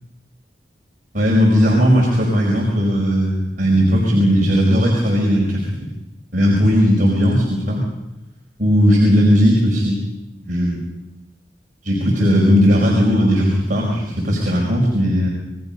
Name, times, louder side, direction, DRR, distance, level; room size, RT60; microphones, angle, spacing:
voice 1, 1.1-5.9 6.3-7.8 8.6-10.0 10.4-10.8 11.8-15.3, equal, 50° right, -2 dB, 5.1 m, -16 dB
28.0 x 21.5 x 5.5 m, 0.98 s
head